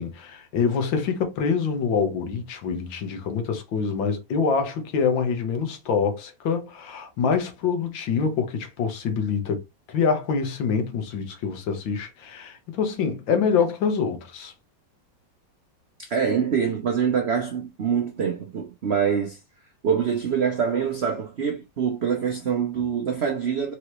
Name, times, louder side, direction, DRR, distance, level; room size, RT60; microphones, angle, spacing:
voice 1, 0.0-9.6 9.9-14.5, left 6 dB, 75° left, 1.7 m, -25 dB
voice 2, 16.0-19.4 19.8-23.7, right 7 dB, 80° right, 0.5 m, -25 dB
4.7 x 2.9 x 3.0 m
omnidirectional pair, 2.1 m